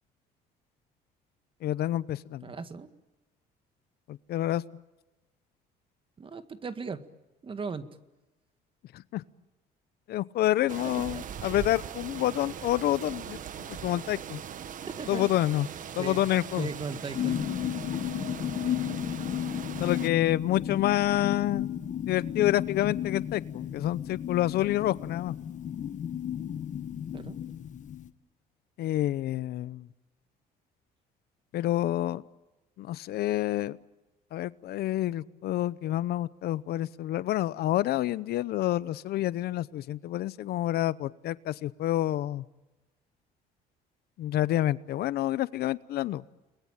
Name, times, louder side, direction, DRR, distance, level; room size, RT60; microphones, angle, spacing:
voice 1, 1.6-2.5 4.1-4.6 8.9-9.2 10.1-13.4 13.7-14.4 15.1-15.7 16.0-16.7 19.8-21.7 22.1-25.3 28.8-29.9 31.5-32.2 32.8-33.8 34.3-42.4 44.2-46.2, left 14 dB, 70° left, 18 dB, 0.8 m, -28 dB
voice 2, 2.4-2.9 6.2-7.0 7.4-7.9 11.1-11.2 14.9-15.3 16.0-16.3 16.6-17.4 27.1-27.4, right 4 dB, 30° right, 10 dB, 1.8 m, -37 dB
sound 1, 10.7-20.1, right 8 dB, 50° right, 1.5 m, -40 dB
sound 2, 17.1-28.1, left 10 dB, 45° left, 1.6 m, -33 dB
30.0 x 21.0 x 9.0 m, 1.1 s
cardioid pair, 110°, 17 cm